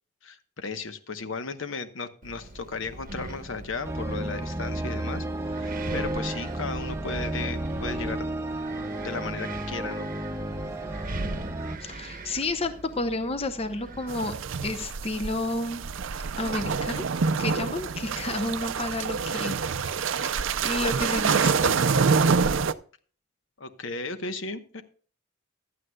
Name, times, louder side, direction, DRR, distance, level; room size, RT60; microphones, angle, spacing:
voice 1, 0.2-8.3 9.0-10.1 23.6-24.8, left 4 dB, 65° left, 9 dB, 1.0 m, -35 dB
Wind, 2.2-14.9, right 2 dB, 40° right, 0.9 m, -40 dB
sound 1, 3.8-11.8, right 1 dB, 15° right, 0.8 m, -32 dB
voice 2, 11.8-14.3 14.6-15.8 16.4-17.1 17.4-20.3 20.6-21.7, left 2 dB, 30° left, 8 dB, 0.7 m, -31 dB
sound 2, 14.1-22.7, right 5 dB, 65° right, 0.5 m, -26 dB
15.5 x 11.0 x 2.3 m, 0.40 s
head